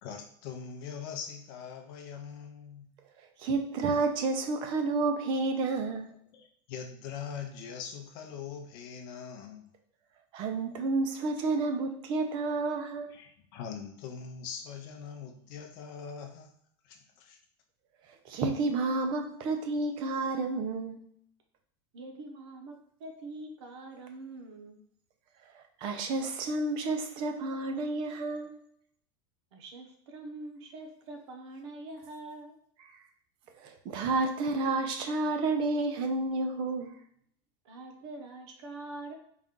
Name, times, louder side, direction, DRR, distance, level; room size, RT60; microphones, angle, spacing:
voice 1, 0.0-2.9 6.3-9.7 13.1-16.5 16.8-17.4, left 7 dB, 50° left, 4 dB, 0.6 m, -42 dB
voice 2, 3.4-6.1 10.3-13.1 18.3-21.0 25.8-28.6 33.6-36.9, right 3 dB, 35° right, 5 dB, 0.5 m, -30 dB
voice 3, 21.9-24.8 29.5-32.5 37.6-39.1, right 2 dB, 75° right, 3 dB, 0.9 m, -44 dB
4.1 x 2.4 x 3.7 m, 0.66 s
supercardioid pair, 165°, 14 cm